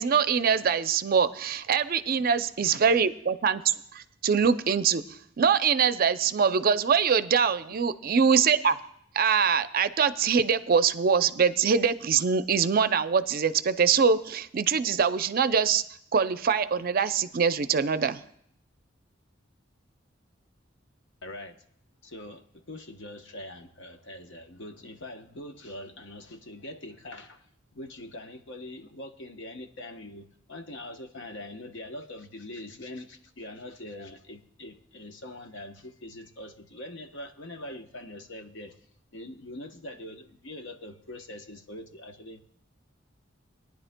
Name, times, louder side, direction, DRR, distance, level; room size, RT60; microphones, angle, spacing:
voice 1, 0.0-3.6 3.9-5.0 5.4-8.8 9.1-15.8 16.1-18.2, right 6 dB, 50° right, 12 dB, 0.5 m, -23 dB
voice 2, 21.2-21.6 22.0-38.7 39.1-42.4, left 1 dB, 70° left, 6 dB, 0.9 m, -43 dB
21.5 x 10.0 x 2.2 m, 0.68 s
head